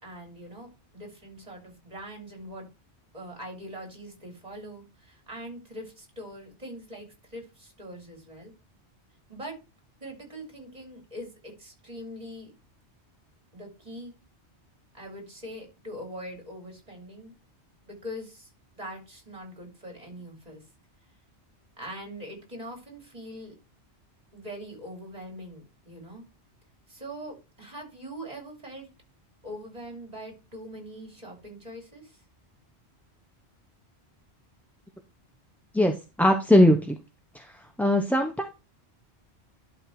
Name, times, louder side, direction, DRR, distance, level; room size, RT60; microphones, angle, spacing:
voice 1, 0.0-2.7 3.1-8.5 9.3-9.6 10.0-12.5 13.5-14.1 14.9-17.3 17.9-18.5 18.7-20.6 21.8-23.5 24.3-26.2 26.9-28.9 29.4-32.2, equal, 35° right, 1 dB, 3.4 m, -42 dB
voice 2, 36.2-36.9 37.3-37.5 37.8-38.5, left 1 dB, ahead, 4 dB, 0.7 m, -20 dB
11.5 x 3.9 x 4.7 m, 0.27 s
omnidirectional pair, 1.1 m